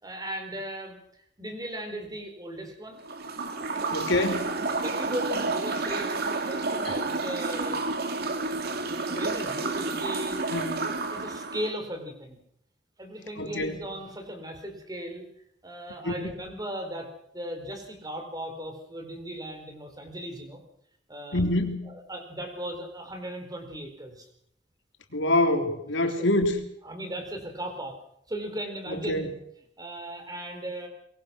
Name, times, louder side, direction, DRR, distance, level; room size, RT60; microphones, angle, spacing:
voice 1, 0.0-1.0 1.4-3.0 3.7-3.8 4.2-4.3 4.7-8.0 8.7-10.4 10.8-12.4 13.0-15.3 15.6-20.6 21.1-21.5 21.8-24.3 26.1-26.3 26.8-28.0 28.3-29.3 29.8-30.9, right 1 dB, 20° right, 5 dB, 4.5 m, -37 dB
sound 1, 3.0-11.7, right 3 dB, 55° right, 2.5 m, -30 dB
voice 2, 3.9-4.4 10.5-10.8 13.4-13.8 16.0-16.1 21.3-21.8 25.1-26.5 28.9-29.3, left 1 dB, 75° left, 4 dB, 3.4 m, -25 dB
23.5 x 22.5 x 6.3 m, 0.73 s
head